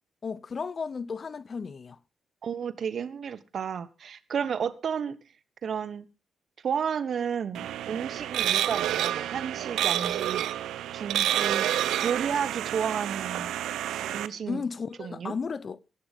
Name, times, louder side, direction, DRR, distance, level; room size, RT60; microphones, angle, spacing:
voice 1, 0.2-2.0 14.5-15.8, left 5 dB, 50° left, 0.9 m, -34 dB
voice 2, 2.4-5.2 5.6-6.1 6.6-10.4 10.9-11.7 12.0-13.5 14.1-14.6 15.0-15.3, right 7 dB, 60° right, 1.2 m, -32 dB
sound 1, 7.5-14.3, right 12 dB, 75° right, 0.7 m, -29 dB
16.0 x 14.0 x 3.7 m
hypercardioid pair, 45°, 0 cm